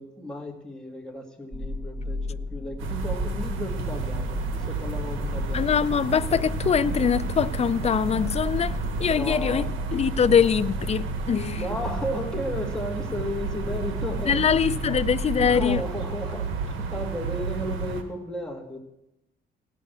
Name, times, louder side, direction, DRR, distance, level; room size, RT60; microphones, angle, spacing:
voice 1, 0.0-6.0 9.1-9.7 11.6-15.0 15.4-18.8, left 1 dB, 5° left, 1.9 m, -34 dB
sound 1, 1.5-15.7, left 2 dB, 15° right, 1.8 m, -35 dB
sound 2, 2.8-18.0, right 5 dB, 90° right, 1.3 m, -32 dB
sound 3, 3.7-9.5, right 5 dB, 65° right, 1.7 m, -42 dB
voice 2, 5.5-9.6 9.9-11.7 14.3-15.8, left 7 dB, 30° left, 0.4 m, -23 dB
17.5 x 6.3 x 6.7 m
cardioid pair, 90°, 20 cm